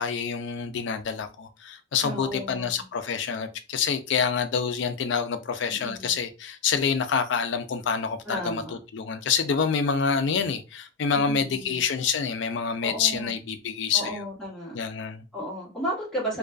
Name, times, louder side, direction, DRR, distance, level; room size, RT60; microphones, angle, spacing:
voice 1, 0.0-8.6 8.9-14.2 14.7-15.2, left 6 dB, 75° left, 0.4 m, -27 dB
voice 2, 2.0-2.8 5.7-6.2 8.2-8.8 11.1-11.8 12.8-13.3 13.9-14.8 15.3-16.4, equal, 5° left, 1.1 m, -34 dB
2.4 x 2.2 x 2.3 m
head